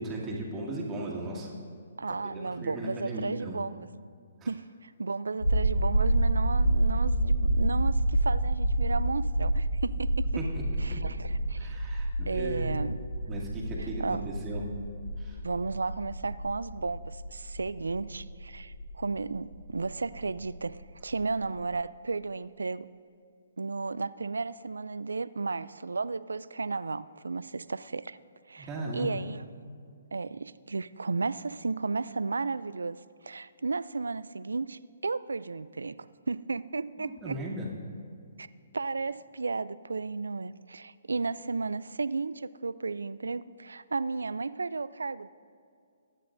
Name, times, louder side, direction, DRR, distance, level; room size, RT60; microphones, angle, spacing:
voice 1, 0.0-1.5 2.1-3.6 4.4-4.5 10.4-11.2 11.6-12.9 13.3-14.6 15.2-15.4 28.6-29.2 37.0-37.7, right 1 dB, 20° right, -3 dB, 2.1 m, -37 dB
voice 2, 2.0-3.9 4.5-10.3 10.8-11.8 12.3-13.3 13.8-14.3 15.4-22.9 23.6-28.2 28.5-29.4 30.1-33.0 33.2-37.4 38.4-38.5 38.7-45.3, right 4 dB, 80° right, 17 dB, 0.3 m, -34 dB
sound 1, 5.4-21.4 21.7-21.8, right 1 dB, 80° left, 2.2 m, -29 dB
20.0 x 9.5 x 2.6 m, 2.3 s
figure-of-eight pair, 135°, 0 cm